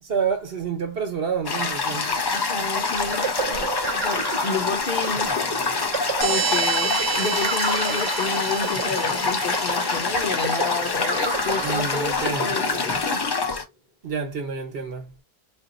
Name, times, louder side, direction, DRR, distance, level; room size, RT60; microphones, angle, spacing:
voice 1, 0.0-2.3 11.5-12.5 14.0-15.1, right 6 dB, 70° right, 1.2 m, -28 dB
Toilet flush, 1.4-13.6, left 4 dB, 40° left, 0.4 m, -26 dB
voice 2, 2.3-5.3 6.2-13.4, left 4 dB, 60° left, 1.0 m, -30 dB
sound 1, 2.9-13.5, right 4 dB, 30° right, 0.8 m, -33 dB
sound 2, 6.2-10.5, right 8 dB, 85° right, 0.9 m, -30 dB
4.3 x 2.4 x 2.5 m
omnidirectional pair, 1.0 m